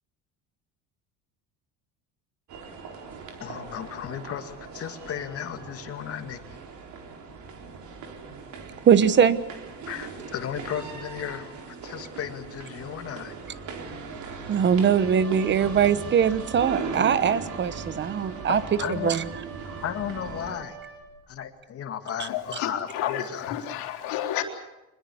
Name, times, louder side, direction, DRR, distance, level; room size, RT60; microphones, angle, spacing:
sound 1, 2.5-20.5, right 5 dB, 50° right, 4.1 m, -39 dB
voice 1, 3.4-6.4 9.9-13.3 18.5-19.2 19.8-20.8 21.3-23.7, left 9 dB, 40° left, 7 dB, 2.2 m, -34 dB
voice 2, 8.8-9.4 14.5-18.6 19.0-19.2, right 8 dB, 30° right, 15 dB, 1.1 m, -21 dB
Wind instrument woodwind instrument, 14.8-21.4, right 6 dB, 90° right, 4.9 m, -45 dB
voice 3, 22.3-24.4, left 11 dB, 75° left, 4 dB, 3.8 m, -31 dB
25.0 x 20.5 x 7.2 m, 1.0 s
cardioid pair, 145°, 37 cm